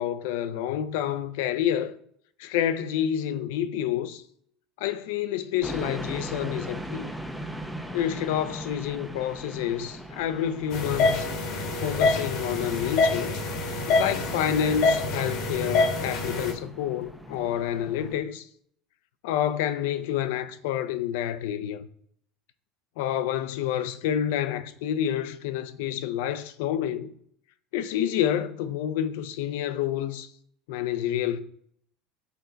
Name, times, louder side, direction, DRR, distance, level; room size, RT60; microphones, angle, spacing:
voice 1, 0.0-1.9 2.4-4.2 4.8-7.1 7.9-11.3 11.8-13.3 13.9-18.5 19.2-21.9 23.0-27.1 27.7-30.3 30.7-31.4, left 10 dB, 75° left, 0.5 m, -28 dB
sound 1, 5.6-18.2, equal, ahead, 0.5 m, -40 dB
sound 2, 10.7-16.5, left 3 dB, 50° left, 1.0 m, -26 dB
6.8 x 4.4 x 4.0 m
cardioid pair, 175°, 0 cm